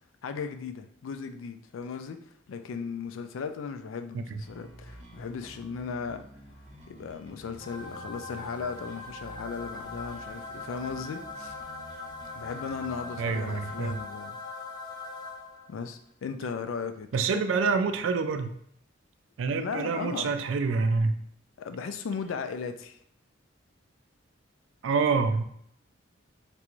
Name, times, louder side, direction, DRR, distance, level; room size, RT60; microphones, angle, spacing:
voice 1, 0.2-6.2 6.9-11.6 12.3-14.4 15.7-17.8 19.5-20.4 21.6-23.0, left 5 dB, 85° left, 8 dB, 0.3 m, -37 dB
sound 1, 4.4-14.0, right 1 dB, 40° right, 0.6 m, -50 dB
sound 2, 7.6-15.9, left 3 dB, 20° left, 0.4 m, -41 dB
voice 2, 13.2-14.0 17.1-18.6 19.4-21.2 24.8-25.4, right 4 dB, 75° right, 8 dB, 0.3 m, -27 dB
3.3 x 2.5 x 3.0 m, 0.68 s
head